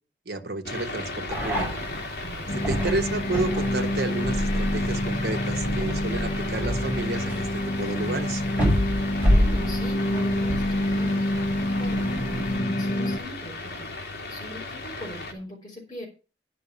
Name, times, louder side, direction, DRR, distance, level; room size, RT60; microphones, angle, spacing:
voice 1, 0.2-1.8 2.5-8.4, right 2 dB, 65° right, 5 dB, 1.3 m, -31 dB
sound 1, 0.6-15.3, left 2 dB, 65° left, 2.7 m, -36 dB
sound 2, 1.3-12.6, equal, 10° right, 6.0 m, -29 dB
voice 2, 2.2-2.7 9.1-13.9 14.3-16.1, equal, 25° left, -4 dB, 4.2 m, -41 dB
sound 3, 2.5-13.2, left 1 dB, 45° left, 0.8 m, -28 dB
10.5 x 6.2 x 6.9 m, 0.34 s
head